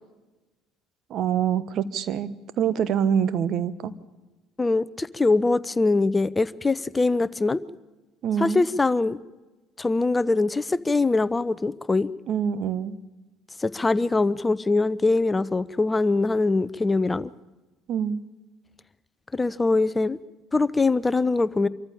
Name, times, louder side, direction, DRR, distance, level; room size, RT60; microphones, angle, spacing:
voice 1, 1.1-3.9 8.2-8.6 12.3-13.0 17.9-18.2, right 8 dB, 55° right, 16 dB, 1.1 m, -25 dB
voice 2, 4.6-7.6 8.4-9.2 9.8-12.1 13.6-17.3 19.3-20.2 20.5-21.7, left 3 dB, 20° left, 18 dB, 0.7 m, -23 dB
25.5 x 14.5 x 8.8 m, 1.2 s
hypercardioid pair, 60°, 0 cm